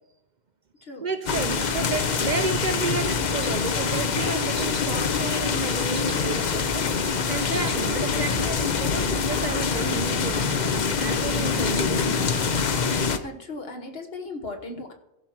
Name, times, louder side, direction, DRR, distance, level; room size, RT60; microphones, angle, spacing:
voice 1, 1.0-12.0, right 4 dB, 50° right, 9 dB, 0.7 m, -32 dB
sound 1, 1.3-13.2, left 5 dB, 45° left, 0.8 m, -25 dB
sound 2, 3.4-3.7 4.5-4.9 5.2-5.6 5.9-6.9 7.3-7.8 8.1-8.2 8.4-8.5 8.9-9.2 9.5-10.0 10.4-11.1 11.6-11.9 12.6-12.9, right 4 dB, 85° right, 2.0 m, -44 dB
voice 2, 13.2-14.9, left 2 dB, 65° left, 4 dB, 1.6 m, -37 dB
15.0 x 6.0 x 4.6 m, 0.94 s
omnidirectional pair, 1.1 m